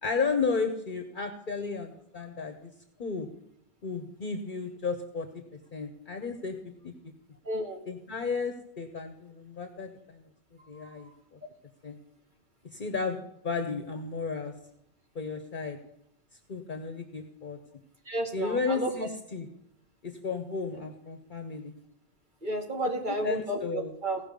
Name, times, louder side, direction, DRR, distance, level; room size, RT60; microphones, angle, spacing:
voice 1, 0.0-2.7 3.0-3.3 3.8-5.4 5.7-6.6 6.8-6.9 7.9-10.3 10.7-11.4 11.8-12.0 12.7-14.5 15.1-15.8 16.3-17.6 18.3-19.5 20.0-21.7 23.2-23.9, left 4 dB, 55° left, 6 dB, 1.1 m, -33 dB
voice 2, 7.4-7.8 10.6-11.1 18.0-18.9 20.7-20.8 22.4-24.2, right 1 dB, 50° right, 0 dB, 2.4 m, -32 dB
17.0 x 5.7 x 5.2 m, 0.78 s
omnidirectional pair, 1.0 m